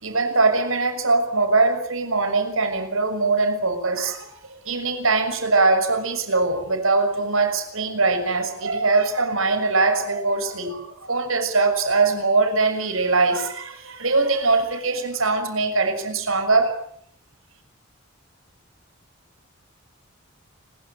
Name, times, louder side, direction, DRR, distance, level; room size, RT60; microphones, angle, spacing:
voice 1, 0.0-16.8, right 3 dB, 70° right, 8 dB, 6.2 m, -22 dB
30.0 x 22.5 x 8.8 m, 0.66 s
head